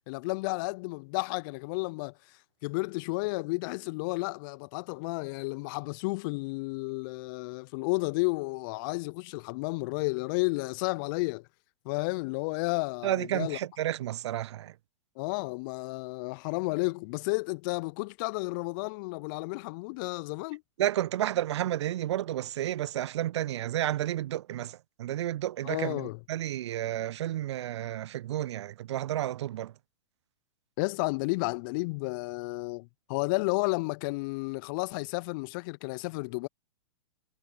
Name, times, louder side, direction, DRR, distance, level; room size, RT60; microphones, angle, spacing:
voice 1, 0.1-2.1 2.6-11.5 11.9-13.6 15.2-20.6 25.6-26.2 30.8-36.5, left 27 dB, 40° left, 0.6 m, -32 dB
voice 2, 13.0-14.7 20.8-29.7, right 13 dB, 55° right, 0.4 m, -31 dB
figure-of-eight pair, 110°, 17 cm